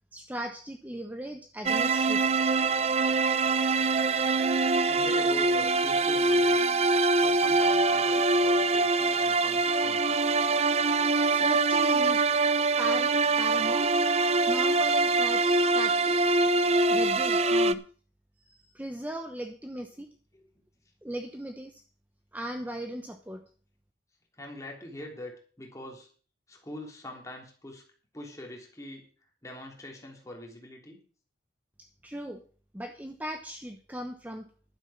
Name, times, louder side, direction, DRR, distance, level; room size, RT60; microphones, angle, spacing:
voice 1, 0.1-2.3 11.3-12.2 12.8-13.9 14.5-16.4 16.9-17.8 18.5-20.1 21.0-21.8 22.3-23.4 32.0-32.4 32.7-34.5, right 1 dB, 10° right, 6 dB, 0.8 m, -38 dB
sound 1, 1.7-17.7, right 3 dB, 35° right, 0.5 m, -24 dB
voice 2, 4.9-6.7 7.2-10.3 20.3-20.4 24.3-26.1 26.5-27.8 28.1-29.1 29.4-31.0, left 1 dB, 20° left, 0 dB, 3.3 m, -43 dB
12.0 x 8.9 x 5.9 m, 0.42 s
head